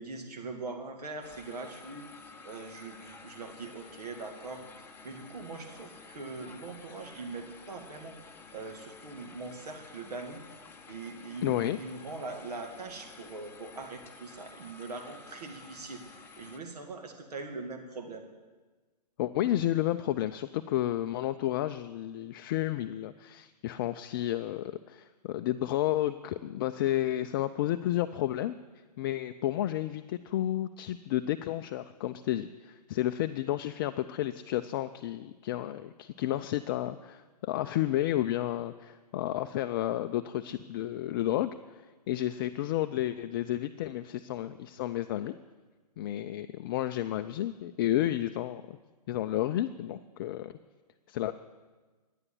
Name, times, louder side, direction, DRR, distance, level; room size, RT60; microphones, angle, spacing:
voice 1, 0.0-2.1 2.4-4.6 5.0-10.4 10.8-18.2, right 3 dB, 65° right, 3 dB, 2.0 m, -42 dB
sound 1, 1.2-16.6, left 4 dB, 10° left, 1.1 m, -51 dB
voice 2, 11.4-11.8 19.2-28.5 29.0-45.4 46.0-48.8 49.1-50.5 51.1-51.3, left 13 dB, 35° left, 10 dB, 0.4 m, -31 dB
12.5 x 10.0 x 8.4 m, 1.3 s
figure-of-eight pair, 125°, 21 cm